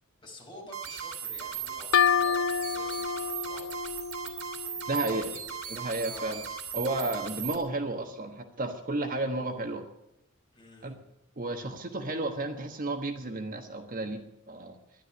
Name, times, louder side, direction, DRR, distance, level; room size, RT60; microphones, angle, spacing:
voice 1, 0.2-3.7 4.2-4.4 4.7-5.4 6.0-6.4 7.2-7.5 10.5-11.0, left 1 dB, 25° left, -1 dB, 4.7 m, -50 dB
sound 1, 0.7-7.6, right 8 dB, 80° right, 3.2 m, -38 dB
sound 2, 1.9-5.5, left 7 dB, 70° left, 0.7 m, -29 dB
voice 2, 4.9-5.3 5.7-6.4 6.7-9.8 10.8-10.9 11.4-14.8, right 2 dB, 40° right, 6 dB, 1.3 m, -32 dB
12.5 x 11.5 x 9.7 m, 0.83 s
head